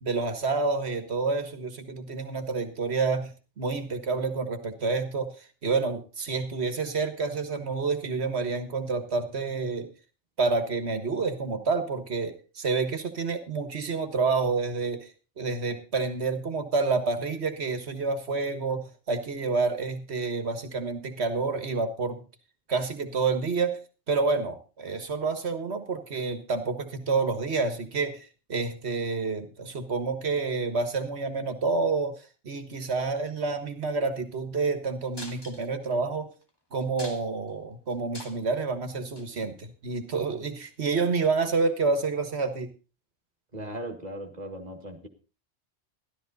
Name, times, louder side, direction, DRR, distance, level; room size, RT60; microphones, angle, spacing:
voice 1, 0.0-9.9 10.4-22.2 22.7-23.8 24.1-36.3 36.7-42.7, right 4 dB, 70° right, 9 dB, 1.7 m, -29 dB
sound 1, 35.1-35.9 36.4-36.5 36.8-37.5 37.9-38.5 39.1-39.3 40.2-40.3, left 2 dB, 20° left, 1.5 m, -43 dB
voice 2, 43.5-45.1, right 1 dB, 40° right, 4 dB, 2.1 m, -38 dB
13.0 x 12.5 x 4.0 m, 0.34 s
omnidirectional pair, 1.1 m